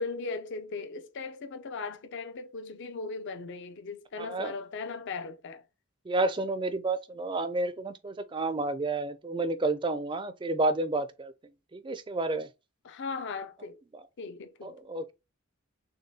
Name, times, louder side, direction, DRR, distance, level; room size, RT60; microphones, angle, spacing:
voice 1, 0.0-5.6 12.8-13.8 14.2-14.8, left 4 dB, 55° left, 0.5 m, -38 dB
voice 2, 4.2-4.5 6.1-11.3 11.7-12.5 13.9-14.0 14.6-15.1, right 2 dB, 20° right, 0.4 m, -30 dB
6.5 x 2.2 x 2.7 m
head